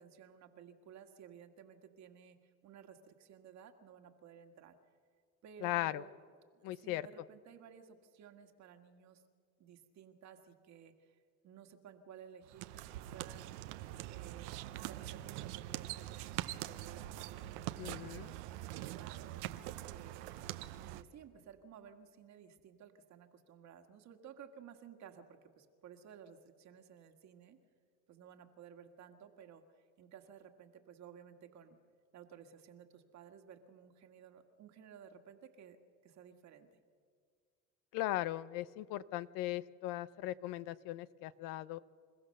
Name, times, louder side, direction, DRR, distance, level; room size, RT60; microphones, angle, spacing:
voice 1, 0.0-2.4 2.6-4.7 5.4-6.1 6.5-9.2 9.6-11.2 11.4-13.5 14.1-14.5 14.8-20.4 20.7-27.6 28.1-31.8 32.1-35.8 36.0-36.7, right 8 dB, 55° right, 6 dB, 1.8 m, -56 dB
voice 2, 5.6-6.0 6.6-7.0 17.8-18.3 37.9-41.8, left 15 dB, 75° left, 17 dB, 0.7 m, -38 dB
sound 1, 12.4-21.0, right 14 dB, 90° right, 0.8 m, -44 dB
27.5 x 15.0 x 6.6 m, 2.1 s
supercardioid pair, 95°, 33 cm